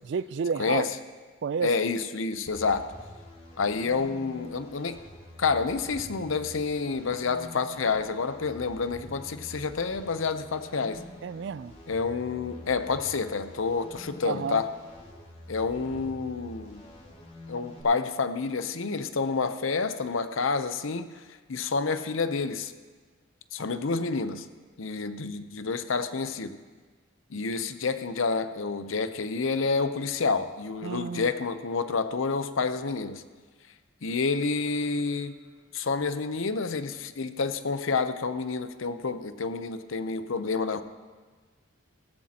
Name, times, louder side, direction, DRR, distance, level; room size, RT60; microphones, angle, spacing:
voice 1, 0.0-0.9 1.4-1.7 11.2-11.7 14.3-14.6 30.8-31.3, right 6 dB, 60° right, 17 dB, 0.3 m, -30 dB
voice 2, 0.6-1.0 1.6-2.8 3.6-5.0 5.4-11.0 11.9-14.7 15.5-16.8 17.5-21.2 21.5-22.7 23.5-24.5 24.8-26.6 27.3-33.2 34.0-35.4 35.7-40.8, left 4 dB, 80° left, 10 dB, 0.7 m, -29 dB
sound 1, 2.5-17.8, left 1 dB, 30° left, 2.3 m, -47 dB
16.5 x 15.0 x 2.9 m, 1.4 s
head